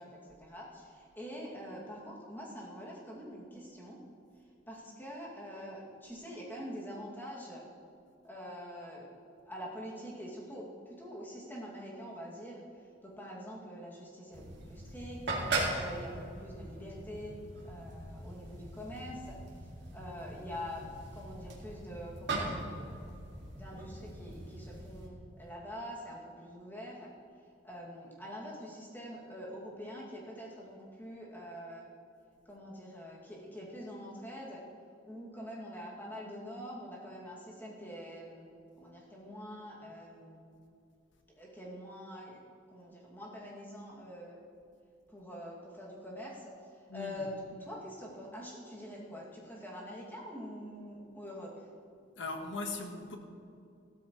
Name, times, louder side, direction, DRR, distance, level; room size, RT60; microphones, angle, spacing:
voice 1, 0.0-4.0 4.7-7.6 8.2-9.1 9.5-12.6 13.0-17.3 17.6-19.4 19.9-23.1 23.5-27.1 27.6-31.9 32.5-34.6 35.0-38.5 38.8-40.4 41.4-42.4 42.7-44.4 45.1-46.5 46.9-47.3 47.6-51.7, equal, 10° left, -5 dB, 2.4 m, -45 dB
sound 1, 14.3-25.1, right 2 dB, 65° right, 2.2 m, -40 dB
voice 2, 46.9-47.3 52.2-53.2, left 3 dB, 75° left, 4 dB, 1.4 m, -39 dB
15.5 x 13.0 x 3.2 m, 2.6 s
head